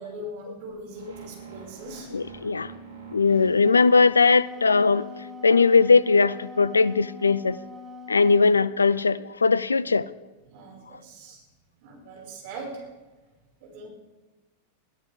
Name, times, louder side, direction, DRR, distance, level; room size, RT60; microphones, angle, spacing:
voice 1, 0.0-2.1 2.4-2.5 10.5-11.4 11.8-12.9 13.6-13.9, right 1 dB, 50° right, -1 dB, 5.7 m, -40 dB
sound 1, 0.9-5.0, right 4 dB, 70° right, 4.3 m, -45 dB
voice 2, 2.1-2.7 3.1-5.1 5.4-7.6 8.1-10.1, left 4 dB, 75° left, 20 dB, 0.4 m, -19 dB
Wind instrument woodwind instrument, 3.4-8.5, left 4 dB, 15° right, 2.1 m, -42 dB
21.5 x 14.5 x 3.6 m, 1.2 s
figure-of-eight pair, 90°, 0 cm